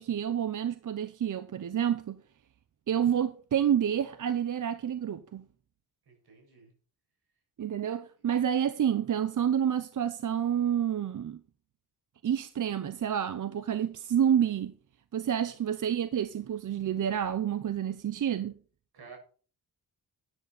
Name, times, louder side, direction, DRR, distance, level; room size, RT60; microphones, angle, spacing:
voice 1, 0.0-2.2 2.9-5.4 7.6-11.4 12.2-14.7 15.1-18.5, right 9 dB, 55° right, 0.8 m, -29 dB
voice 2, 6.1-6.7 15.3-15.4 18.9-19.2, right 5 dB, 80° right, 7.4 m, -52 dB
13.0 x 10.5 x 4.3 m
wide cardioid pair, 160°, 38 cm